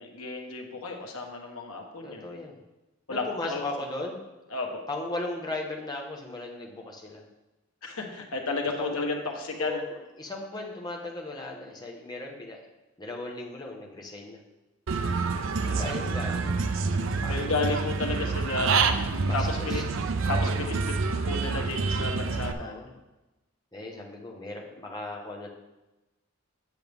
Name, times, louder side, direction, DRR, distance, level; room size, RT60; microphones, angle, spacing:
voice 1, 0.0-2.2 3.1-3.7 4.5-4.8 7.8-9.8 15.6-15.8 17.3-18.9 19.3-19.8 20.3-20.9 21.3-22.8, left 3 dB, 90° left, 2 dB, 1.4 m, -32 dB
voice 2, 2.0-2.6 3.1-4.2 4.9-7.2 8.8-8.9 9.6-12.6 13.0-14.4 15.6-16.5 17.0-17.5 18.8-19.8 22.5-22.9 23.7-25.5, left 2 dB, 20° left, -1 dB, 1.2 m, -37 dB
Human voice / Bird, 14.9-22.5, right 4 dB, 65° right, 0.5 m, -27 dB
8.1 x 7.9 x 3.5 m, 1.0 s
head